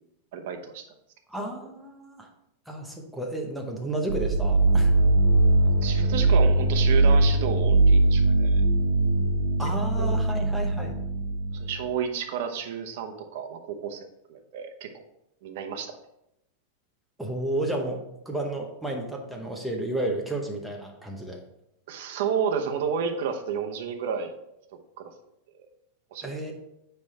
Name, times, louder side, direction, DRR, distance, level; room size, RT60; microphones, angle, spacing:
voice 1, 0.3-0.8 5.8-8.6 10.0-10.2 11.5-15.0 15.4-16.0 21.9-24.3 25.0-25.1 25.5-25.7 26.1-26.4, right 7 dB, 55° right, 5 dB, 0.9 m, -31 dB
voice 2, 1.3-2.3 2.7-4.9 9.6-11.0 17.2-21.4 26.2-26.5, right 1 dB, ahead, 0 dB, 0.8 m, -32 dB
sound 1, 4.1-11.8, right 2 dB, 90° right, 1.0 m, -21 dB
9.4 x 3.4 x 4.2 m, 0.81 s
supercardioid pair, 170°, 0 cm